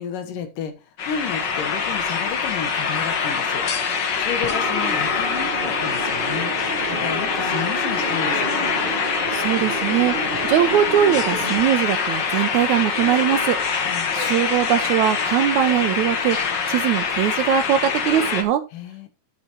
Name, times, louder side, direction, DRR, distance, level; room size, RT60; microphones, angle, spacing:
voice 1, 0.0-8.6 13.8-14.1 18.7-19.1, left 7 dB, 80° left, 2.9 m, -32 dB
sound 1, 1.0-18.4, left 6 dB, 55° left, 1.3 m, -24 dB
sound 2, 4.4-11.6, right 3 dB, 40° right, 0.7 m, -31 dB
voice 2, 9.3-10.1 10.4-16.4 16.7-18.6, right 10 dB, 75° right, 1.8 m, -21 dB
13.0 x 6.9 x 3.0 m
omnidirectional pair, 3.8 m